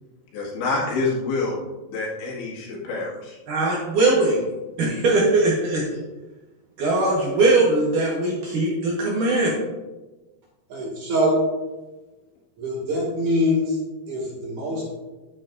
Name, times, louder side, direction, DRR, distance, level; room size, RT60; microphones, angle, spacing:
voice 1, 0.3-1.6 1.9-3.4, left 3 dB, 90° left, -4 dB, 4.2 m, -27 dB
voice 2, 3.5-4.4 4.8-5.8 6.8-9.5, right 2 dB, 65° right, -4 dB, 2.2 m, -20 dB
voice 3, 10.7-11.4 12.6-13.8 14.1-14.8, left 1 dB, 50° right, -3 dB, 3.1 m, -23 dB
9.8 x 8.9 x 2.5 m, 1.1 s
omnidirectional pair, 5.0 m